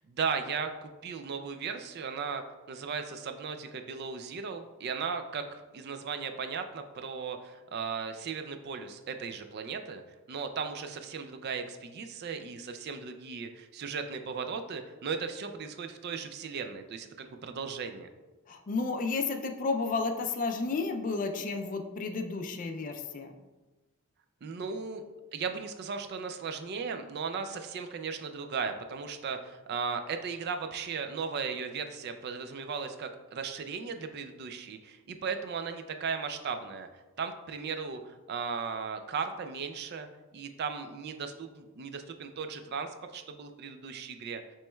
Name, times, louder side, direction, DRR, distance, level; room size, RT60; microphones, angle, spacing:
voice 1, 0.1-10.0 10.3-18.1 24.4-25.0 25.3-44.4, right 5 dB, 50° right, 7 dB, 0.3 m, -36 dB
voice 2, 18.5-23.3, left 4 dB, 40° left, 5 dB, 0.3 m, -32 dB
7.4 x 3.1 x 2.2 m, 1.2 s
head